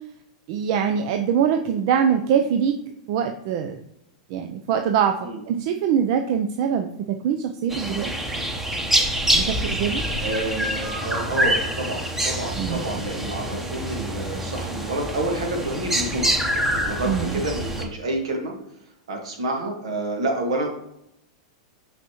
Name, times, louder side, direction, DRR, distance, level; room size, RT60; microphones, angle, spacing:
voice 1, 0.5-2.7 3.1-3.8 4.3-8.1 9.3-10.0 12.6-12.9 17.1-17.4, right 8 dB, 55° right, 6 dB, 0.5 m, -23 dB
sound 1, 7.7-17.8, right 1 dB, 10° right, 1.0 m, -26 dB
voice 2, 10.2-18.5 19.1-20.7, right 2 dB, 80° right, 2 dB, 1.8 m, -29 dB
5.9 x 5.7 x 3.0 m, 0.77 s
hypercardioid pair, 110°, 3 cm